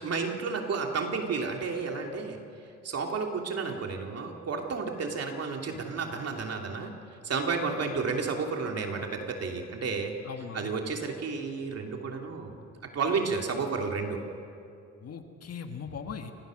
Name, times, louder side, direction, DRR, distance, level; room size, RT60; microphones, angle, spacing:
voice 1, 0.0-2.4 2.8-6.9 7.2-10.1 10.5-12.5 12.9-14.2, right 4 dB, 55° right, 2 dB, 2.9 m, -31 dB
voice 2, 10.2-10.7 15.0-16.3, left 6 dB, 55° left, 6 dB, 1.7 m, -40 dB
29.5 x 16.0 x 6.5 m, 2.5 s
cardioid pair, 90°, 30 cm